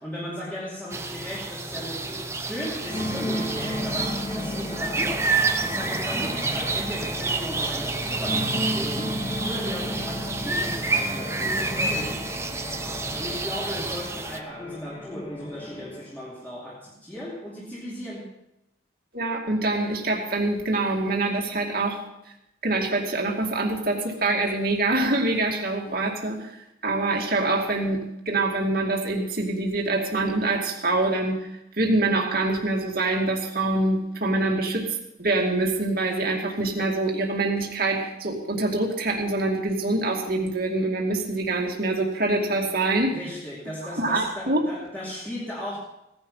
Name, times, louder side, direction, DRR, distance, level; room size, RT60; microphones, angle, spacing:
voice 1, 0.0-5.4 5.6-9.1 9.4-12.3 13.1-18.3 43.1-45.8, left 1 dB, 10° left, -7 dB, 2.6 m, -36 dB
sound 1, 0.9-14.4, right 3 dB, 15° right, 0.9 m, -29 dB
sound 2, 2.8-16.1, left 1 dB, 25° left, 2.1 m, -34 dB
voice 2, 19.1-22.0 22.6-26.5 26.8-31.5 31.8-34.9 35.2-43.2 44.0-44.6, right 2 dB, 50° right, 0 dB, 2.4 m, -25 dB
17.5 x 10.5 x 5.6 m, 0.87 s
head